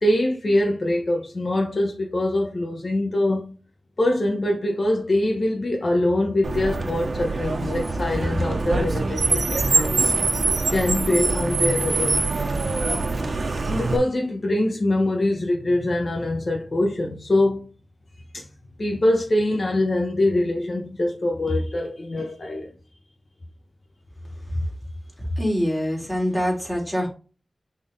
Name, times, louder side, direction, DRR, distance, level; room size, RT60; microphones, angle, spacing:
voice 1, 0.0-3.6 4.0-10.1 10.7-12.5 13.2-13.3 13.7-17.7 18.3-18.5 18.8-22.7, left 1 dB, 50° left, 1.3 m, -23 dB
Car, 6.4-14.0, right 3 dB, 65° right, 1.2 m, -24 dB
voice 2, 25.2-27.1, equal, 5° left, 3.4 m, -24 dB
5.9 x 4.1 x 4.0 m
wide cardioid pair, 70°, 0 cm